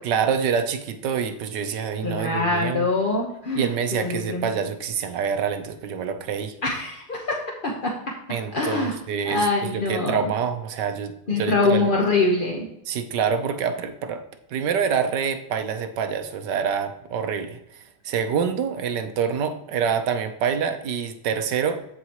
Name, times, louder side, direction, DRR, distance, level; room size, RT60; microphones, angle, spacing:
voice 1, 0.0-2.9 3.5-6.6 8.3-11.9 12.9-17.6 18.0-21.8, right 7 dB, 65° right, 8 dB, 1.2 m, -26 dB
voice 2, 2.0-4.5 6.6-7.4 7.6-7.9 8.5-8.9 9.2-10.2 11.3-12.7, left 3 dB, 40° left, -1 dB, 0.8 m, -24 dB
14.5 x 4.9 x 3.0 m, 0.81 s
omnidirectional pair, 2.2 m